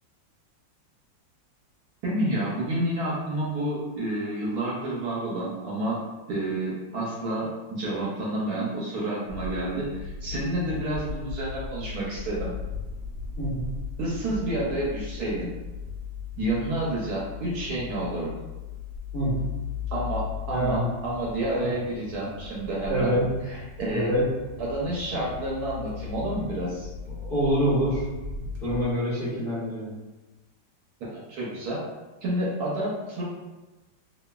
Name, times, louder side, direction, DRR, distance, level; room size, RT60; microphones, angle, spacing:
voice 1, 2.0-6.0 6.3-12.5 14.0-15.5 16.4-18.4 19.9-23.1 23.5-24.1 24.6-26.9 31.0-31.8 32.2-33.2, right 1 dB, 65° right, -5 dB, 1.0 m, -29 dB
sound 1, 9.3-28.9, left 5 dB, 90° right, 1.4 m, -37 dB
voice 2, 20.5-20.9 21.6-21.7 22.9-23.2 23.9-24.2 27.1-28.0 28.3-29.9, right 1 dB, 45° left, -12 dB, 0.7 m, -26 dB
3.1 x 2.3 x 2.2 m, 1.1 s
omnidirectional pair, 2.0 m